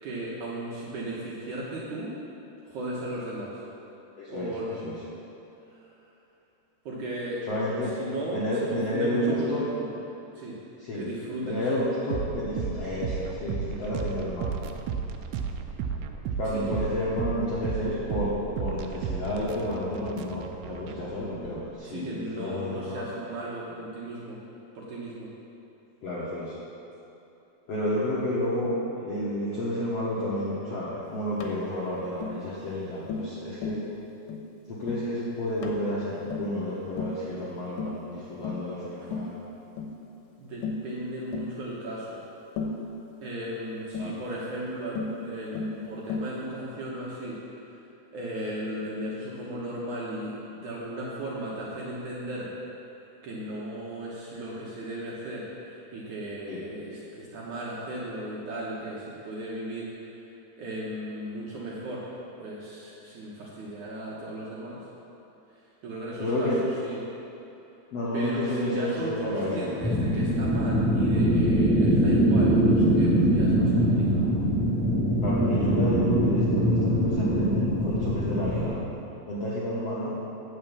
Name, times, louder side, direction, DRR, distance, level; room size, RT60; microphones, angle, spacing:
voice 1, 0.0-2.1 2.7-3.6 4.3-4.9 6.9-7.4 8.0-8.4 8.7-9.9 10.4-10.6 10.9-11.6 16.5-16.7 21.9-24.4 24.8-25.3 39.0-39.1 40.4-42.2 43.2-47.4 48.1-52.5 52.9-60.2 60.6-62.1 62.4-64.8 65.8-66.5 66.8-67.0 68.1-74.3, right 1 dB, 65° right, -6 dB, 2.1 m, -36 dB
voice 2, 4.2-5.0 7.5-7.9 8.3-9.6 10.8-11.1 11.5-14.5 16.4-23.1 26.0-26.6 27.7-33.8 34.7-39.3 44.0-44.2 56.4-56.6 66.2-66.6 67.9-69.7 75.2-78.7 79.3-80.2, left 1 dB, 60° left, -8 dB, 1.6 m, -30 dB
sound 1, 12.1-21.7, right 6 dB, 80° right, 2.5 m, -34 dB
Tap, 31.4-31.6 32.2-32.4 33.1-33.3 33.6-33.9 34.3-34.5 34.9-35.1 35.6-35.8 36.3-36.6 37.0-37.2 37.8-38.0 38.4-38.7 39.1-39.3 39.8-40.0 40.6-40.9 41.3-41.5 42.6-42.8 43.9-44.2 45.0-45.2 45.6-45.8 46.1-46.4, left 4 dB, 90° left, 3.0 m, -33 dB
sound 2, 69.8-78.7, equal, 5° left, 1.5 m, -23 dB
9.0 x 7.4 x 7.2 m, 2.9 s
omnidirectional pair, 4.8 m